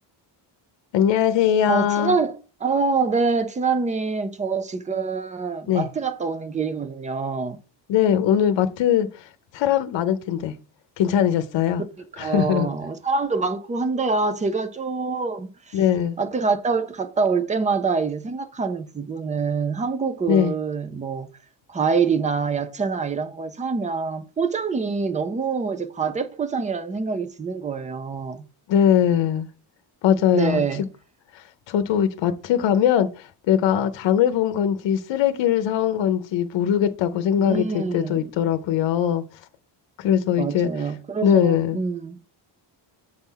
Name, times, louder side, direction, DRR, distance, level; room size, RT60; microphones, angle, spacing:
voice 1, 0.9-2.2 5.7-5.9 7.9-9.2 9.5-10.5 11.0-11.8 12.2-12.7 15.7-16.2 20.3-20.5 28.7-29.5 30.0-30.6 31.7-39.2 40.0-40.7 41.2-41.8, left 9 dB, 70° left, 0.7 m, -21 dB
voice 2, 1.7-7.6 12.2-15.8 16.2-21.3 21.7-28.4 30.3-30.8 37.4-38.3 40.3-42.2, right 4 dB, 15° right, 0.4 m, -25 dB
7.9 x 4.2 x 3.8 m
cardioid pair, 180°, 46 cm